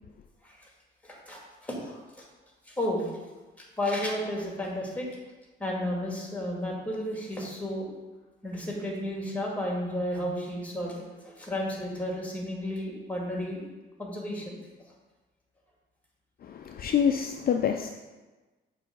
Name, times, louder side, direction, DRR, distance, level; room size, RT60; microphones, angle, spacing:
voice 1, 1.0-2.3 2.6-3.1 3.6-5.1 5.6-7.9 8.4-13.6 14.0-14.6, left 1 dB, 5° left, 1.9 m, -33 dB
voice 2, 16.4-17.9, left 8 dB, 50° left, 0.4 m, -26 dB
6.9 x 3.4 x 5.4 m
cardioid pair, 90°, 20 cm